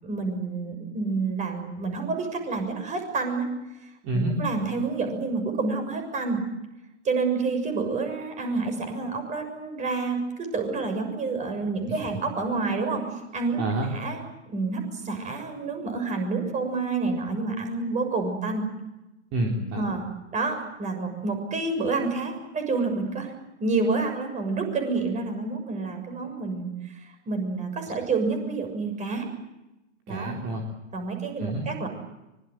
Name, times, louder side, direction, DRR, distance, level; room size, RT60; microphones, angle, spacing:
voice 1, 0.0-3.5 3.8-6.4 7.0-13.0 13.3-13.6 13.9-18.7 19.7-20.0 20.3-23.3 23.6-29.3 30.1-30.3 30.9-31.9, right 3 dB, 20° right, 6 dB, 6.9 m, -28 dB
voice 2, 4.0-4.4 11.9-12.0 13.6-13.9 19.3-19.9 30.1-30.6 31.4-31.6, right 1 dB, 35° right, 0 dB, 4.2 m, -28 dB
25.0 x 22.5 x 7.8 m, 0.96 s
hypercardioid pair, 120°, 37 cm